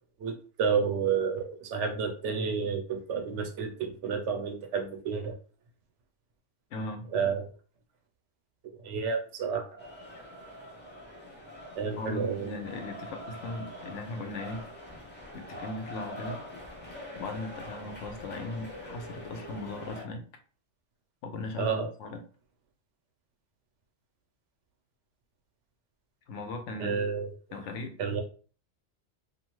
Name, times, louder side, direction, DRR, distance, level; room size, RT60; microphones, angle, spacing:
voice 1, 0.2-5.3 7.1-7.5 8.8-9.9 11.8-12.5 21.6-21.9 26.8-27.3 28.0-28.2, right 6 dB, 80° right, 4 dB, 0.9 m, -30 dB
voice 2, 6.7-7.1 12.0-14.6 15.3-16.4 17.2-20.3 21.2-22.2 26.3-27.0 27.5-28.0, left 2 dB, 85° left, 6 dB, 0.9 m, -38 dB
sound 1, 9.8-20.0, left 1 dB, 10° left, 0.6 m, -44 dB
2.5 x 2.3 x 3.0 m, 0.40 s
omnidirectional pair, 1.2 m